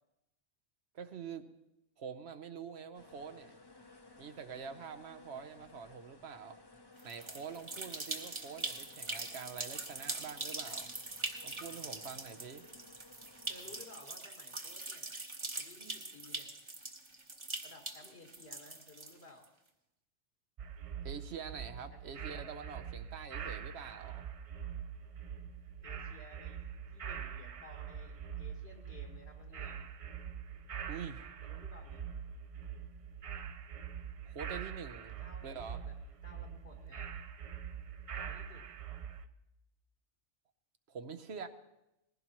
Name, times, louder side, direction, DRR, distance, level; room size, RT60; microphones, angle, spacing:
voice 1, 0.9-1.5 2.0-3.6 4.2-6.6 7.0-10.9 11.4-12.7 21.0-24.3 30.9-31.2 34.3-35.8 40.9-41.5, right 6 dB, 65° right, 10 dB, 1.0 m, -46 dB
sound 1, 2.9-13.9, left 3 dB, 25° left, 0.7 m, -59 dB
sound 2, 7.0-19.4, right 2 dB, 25° right, 1.0 m, -42 dB
voice 2, 13.5-15.1 15.5-16.5 17.6-19.5 21.9-22.5 25.8-26.6 26.9-29.9 31.4-32.0 35.2-37.1 38.1-38.7, left 2 dB, 60° left, 2 dB, 1.9 m, -56 dB
sound 3, 20.6-39.3, right 8 dB, 50° right, 0.4 m, -44 dB
20.0 x 16.0 x 3.0 m, 0.90 s
omnidirectional pair, 1.2 m